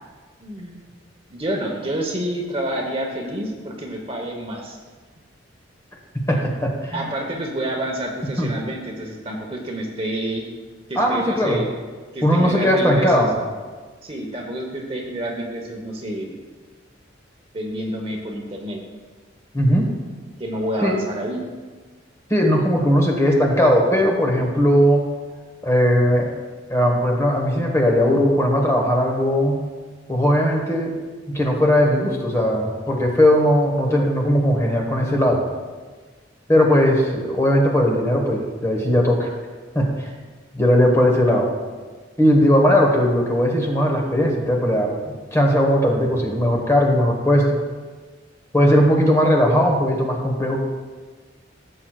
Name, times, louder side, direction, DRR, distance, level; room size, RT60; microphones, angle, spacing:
voice 1, 0.4-0.8 1.3-4.8 6.9-10.4 10.9-11.7 12.1-13.3 14.0-16.4 17.5-18.8 20.4-21.4, right 1 dB, 30° right, 1 dB, 1.0 m, -28 dB
voice 2, 6.3-7.0 8.4-8.5 10.9-11.6 12.2-13.3 19.5-19.9 20.8-20.9 22.3-25.0 25.6-26.3 26.7-29.6 30.1-30.9 31.3-35.4 36.5-39.3 39.7-40.1 40.5-41.5 42.2-44.9 45.3-47.6 48.5-50.6, equal, 15° left, 0 dB, 1.3 m, -18 dB
15.5 x 7.7 x 2.4 m, 1.4 s
head